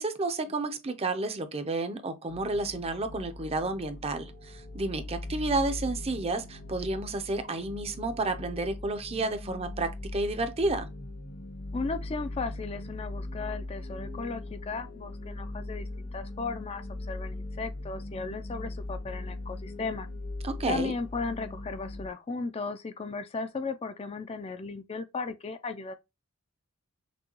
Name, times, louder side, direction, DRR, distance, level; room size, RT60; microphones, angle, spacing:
voice 1, 0.0-10.9 20.4-20.9, right 2 dB, 25° right, 0.5 m, -31 dB
sound 1, 2.3-22.1, left 2 dB, 70° left, 1.1 m, -40 dB
voice 2, 11.7-20.1 20.6-26.0, left 4 dB, 25° left, 0.4 m, -36 dB
6.0 x 2.2 x 2.9 m
head